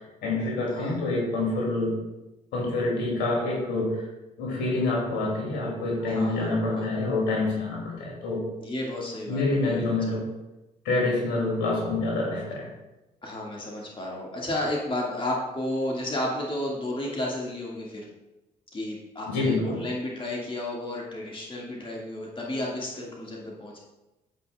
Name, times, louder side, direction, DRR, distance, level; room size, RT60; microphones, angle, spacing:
voice 1, 0.0-1.9 2.5-4.0 4.4-8.4 9.3-10.2 10.8-12.7 19.3-19.8, left 2 dB, 65° left, -3 dB, 2.5 m, -27 dB
voice 2, 6.0-6.9 8.6-10.2 13.2-18.1 18.7-23.8, left 1 dB, 25° left, -3 dB, 2.0 m, -32 dB
14.0 x 5.6 x 2.3 m, 1.0 s
figure-of-eight pair, 40°, 20 cm